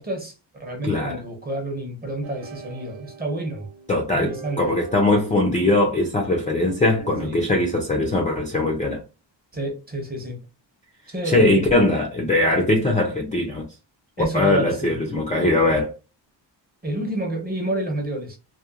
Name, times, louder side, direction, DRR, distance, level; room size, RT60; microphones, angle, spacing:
voice 1, 0.0-3.7 4.2-4.7 7.2-7.4 9.5-10.4 11.1-11.6 14.2-15.0 16.8-18.4, right 1 dB, 20° right, 0.7 m, -29 dB
voice 2, 0.8-1.2 3.9-4.3 4.6-9.0 11.2-13.6 14.3-15.9, left 2 dB, 20° left, 0.3 m, -20 dB
sound 1, 2.2-7.3, right 7 dB, 90° right, 0.7 m, -41 dB
2.9 x 2.1 x 2.3 m
wide cardioid pair, 180°, 46 cm